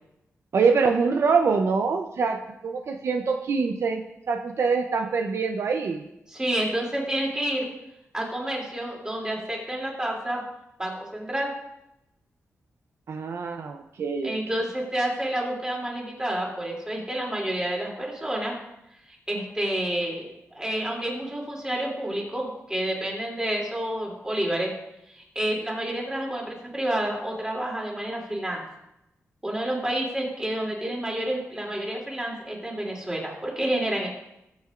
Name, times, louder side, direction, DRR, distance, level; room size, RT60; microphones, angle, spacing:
voice 1, 0.5-6.1 13.1-14.4, right 5 dB, 65° right, 4 dB, 0.7 m, -24 dB
voice 2, 6.3-7.7 8.1-10.4 10.8-11.5 14.2-18.5 19.3-24.7 25.1-28.6 29.4-34.1, right 1 dB, 15° right, -2 dB, 2.9 m, -29 dB
19.0 x 7.4 x 2.5 m, 0.86 s
wide cardioid pair, 115°, 5 cm